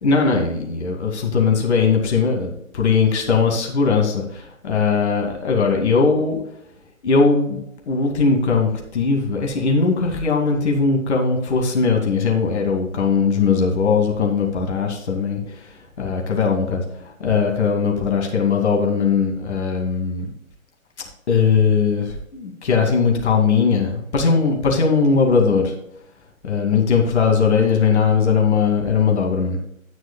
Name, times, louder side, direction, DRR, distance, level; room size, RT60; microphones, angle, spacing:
voice 1, 0.0-6.4 7.0-15.6 16.0-20.3 21.3-25.7 26.4-29.6, left 5 dB, 50° left, 1 dB, 2.5 m, -19 dB
17.5 x 6.1 x 2.3 m, 0.77 s
figure-of-eight pair, 130°, 41 cm